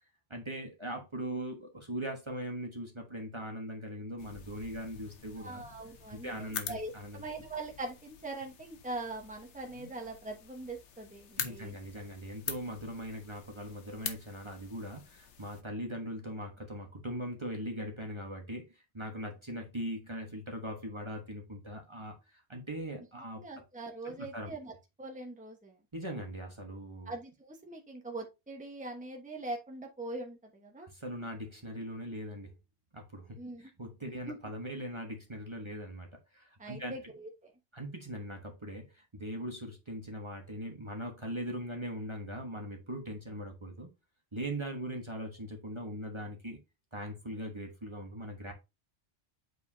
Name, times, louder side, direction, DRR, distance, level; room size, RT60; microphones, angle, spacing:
voice 1, 0.3-5.6 6.1-7.2 11.4-23.4 24.0-24.5 25.9-27.1 30.8-32.6 32.9-36.9 37.7-43.9 44.3-46.6 46.9-48.5, equal, 25° right, 1.2 m, -40 dB
sound 1, 4.2-15.6, left 7 dB, 90° left, 1.2 m, -45 dB
voice 2, 5.4-11.8 23.4-24.7 25.0-25.8 27.1-30.9 33.4-33.7 34.3-34.4 36.6-37.5, right 2 dB, 5° right, 1.1 m, -42 dB
8.0 x 4.9 x 2.7 m
omnidirectional pair, 1.1 m